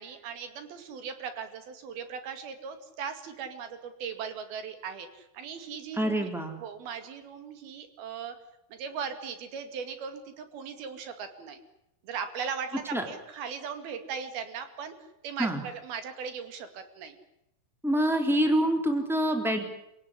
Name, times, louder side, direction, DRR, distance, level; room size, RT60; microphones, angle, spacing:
voice 1, 0.0-6.3 6.6-8.4 8.7-11.6 12.0-14.9 15.2-17.2, right 6 dB, 55° right, 8 dB, 3.6 m, -38 dB
voice 2, 6.0-6.6 12.9-13.1 15.4-15.6 17.8-19.6, right 1 dB, ahead, 4 dB, 2.2 m, -26 dB
26.5 x 17.5 x 10.0 m, 0.83 s
omnidirectional pair, 5.9 m